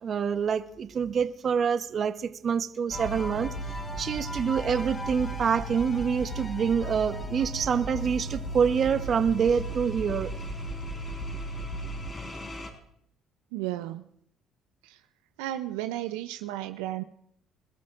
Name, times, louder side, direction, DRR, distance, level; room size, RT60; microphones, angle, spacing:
voice 1, 0.0-3.5 4.0-10.3, right 7 dB, 50° right, 9 dB, 1.0 m, -26 dB
sound 1, 2.9-12.7, right 1 dB, 35° left, 3.9 m, -35 dB
voice 2, 13.5-14.0 14.8-15.0 15.4-17.0, right 14 dB, 90° right, 8 dB, 0.5 m, -33 dB
26.0 x 13.5 x 2.6 m, 0.72 s
supercardioid pair, 75°, 0 cm